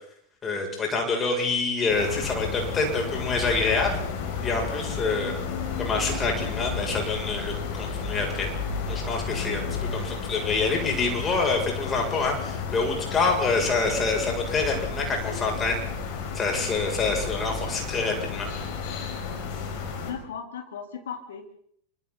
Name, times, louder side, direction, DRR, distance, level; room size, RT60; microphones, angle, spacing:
voice 1, 0.4-4.0 4.4-5.3 5.8-8.5 8.9-9.6 9.9-15.8 16.3-18.5, left 3 dB, 20° left, 1 dB, 7.5 m, -26 dB
sound 1, 1.9-20.1, left 5 dB, 45° left, 5.5 m, -32 dB
voice 2, 20.1-21.5, left 7 dB, 60° left, 4 dB, 4.2 m, -37 dB
29.5 x 25.5 x 4.2 m, 0.66 s
figure-of-eight pair, 90°, 0 cm